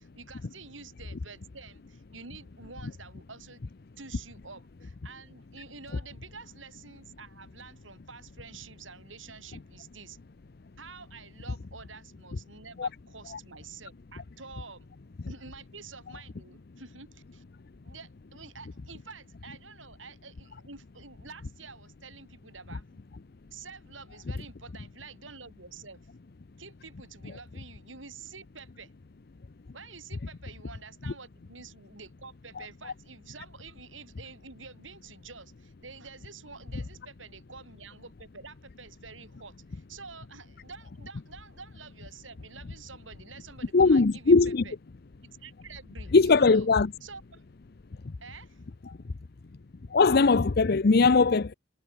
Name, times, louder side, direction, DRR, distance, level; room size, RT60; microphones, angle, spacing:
voice 1, 0.0-3.6 4.0-10.2 10.8-14.9 15.3-17.4 17.8-23.0 23.5-26.1 26.6-28.9 29.7-44.4 44.6-44.7 45.2-46.7 47.0-47.4 48.2-48.6, right 4 dB, 85° right, 6.6 m, -48 dB
voice 2, 43.7-44.6 46.1-46.9 48.9-49.0 49.9-51.5, left 4 dB, 55° left, 0.6 m, -20 dB
head